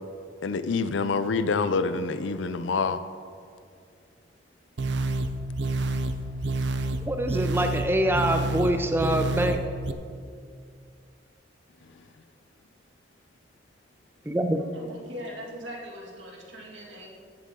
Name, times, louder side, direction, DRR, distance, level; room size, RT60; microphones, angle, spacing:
voice 1, 0.4-3.0, left 4 dB, 75° left, 13 dB, 0.5 m, -26 dB
sound 1, 4.8-9.9, right 2 dB, 65° right, 0.5 m, -29 dB
voice 2, 7.1-9.6 14.3-14.6, right 1 dB, 10° right, 6 dB, 0.4 m, -25 dB
voice 3, 14.7-17.1, equal, 80° right, -1 dB, 2.0 m, -41 dB
14.5 x 7.7 x 3.7 m, 2.3 s
head